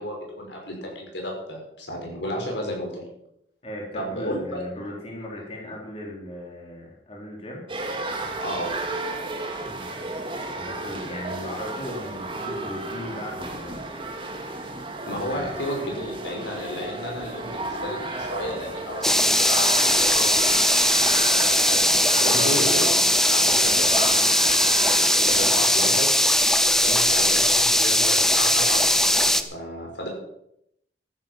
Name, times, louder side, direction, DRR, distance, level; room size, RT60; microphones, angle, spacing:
voice 1, 0.0-3.1 3.9-4.6 8.4-8.7 15.1-20.5 21.2-23.0 23.3-24.1 24.4-26.1 26.6-30.1, equal, 90° left, 0 dB, 5.7 m, -33 dB
voice 2, 3.6-7.6 9.6-10.1 10.5-13.8 15.3-15.5 22.3-22.6, left 1 dB, 35° left, -2 dB, 3.8 m, -37 dB
sound 1, 7.7-25.6, right 2 dB, 30° right, 2.2 m, -33 dB
sound 2, 19.0-29.4, left 1 dB, 5° left, 0.8 m, -20 dB
14.0 x 11.5 x 5.9 m, 0.77 s
head